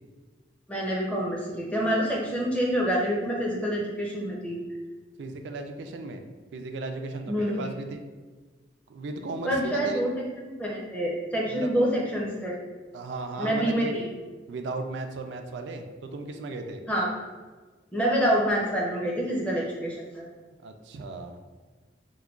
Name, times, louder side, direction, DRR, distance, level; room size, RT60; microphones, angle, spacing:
voice 1, 0.7-4.6 7.3-7.6 9.5-10.1 10.4-12.6 13.4-14.0 16.9-17.1 17.9-20.3, equal, 5° left, -3 dB, 0.5 m, -27 dB
voice 2, 5.2-6.2 6.5-8.0 8.9-10.1 11.5-12.0 12.9-13.9 14.5-16.8 20.6-21.4, right 3 dB, 80° right, 6 dB, 0.3 m, -36 dB
4.5 x 2.2 x 2.3 m, 1.3 s
head